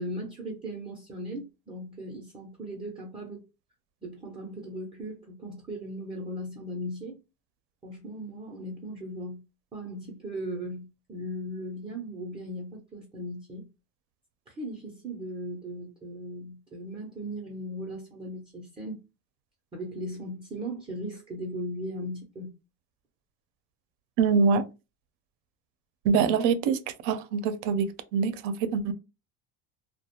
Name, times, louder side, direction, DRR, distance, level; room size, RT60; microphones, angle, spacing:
voice 1, 0.0-3.4 4.0-7.2 7.8-9.4 9.7-13.7 14.5-19.0 19.7-22.5, equal, 15° right, 0.5 m, -38 dB
voice 2, 24.2-24.6 26.0-28.9, right 5 dB, 70° right, 0.6 m, -25 dB
2.3 x 2.1 x 2.8 m
cardioid pair, 130°, 41 cm